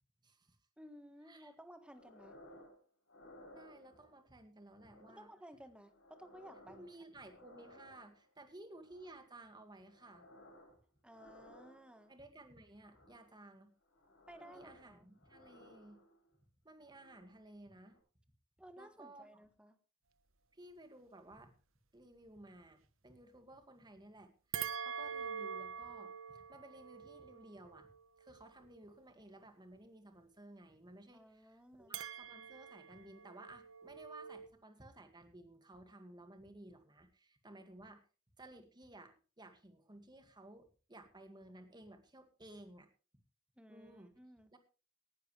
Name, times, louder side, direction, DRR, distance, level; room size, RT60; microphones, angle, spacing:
voice 1, 0.2-0.6 1.3-1.5 3.5-5.3 6.7-10.3 12.1-13.7 14.4-16.0 16.6-18.0 18.8-19.2 20.5-21.5 21.9-27.9 28.2-38.0 38.4-42.9 43.7-44.2 44.5-44.6, right 1 dB, 20° right, 7 dB, 2.1 m, -56 dB
voice 2, 0.8-2.4 5.1-6.9 11.0-12.1 14.3-15.1 18.6-19.8 31.1-32.0 43.6-44.5, equal, 5° right, 9 dB, 1.5 m, -56 dB
sound 1, 1.9-2.8 3.1-4.2 4.7-5.4 5.8-8.3 8.7-9.4 9.8-10.8 11.1-12.2 12.8-13.4 13.8-16.3 16.8-17.4 17.8-18.0, left 1 dB, 65° left, 7.7 m, -60 dB
sound 2, 24.5-29.0 31.9-34.5, right 7 dB, 75° right, 1.1 m, -45 dB
18.5 x 11.5 x 3.3 m, 0.35 s
head